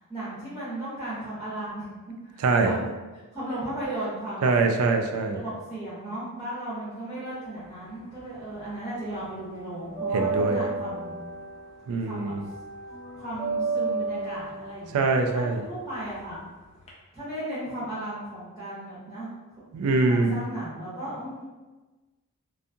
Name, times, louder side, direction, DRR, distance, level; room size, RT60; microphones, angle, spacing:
voice 1, 0.1-1.9 2.3-2.8 3.1-4.5 5.3-11.1 12.0-12.3 13.1-16.4 17.1-19.3 20.1-21.4, right 1 dB, 15° right, -11 dB, 0.7 m, -35 dB
voice 2, 2.4-2.8 4.4-5.4 10.1-10.6 11.9-12.5 14.9-15.6 19.7-20.4, right 3 dB, 70° right, 5 dB, 0.3 m, -23 dB
sound 1, 7.6-8.7 9.0-16.9, right 4 dB, 25° left, 0.5 m, -33 dB
2.6 x 2.3 x 2.6 m, 1.2 s
head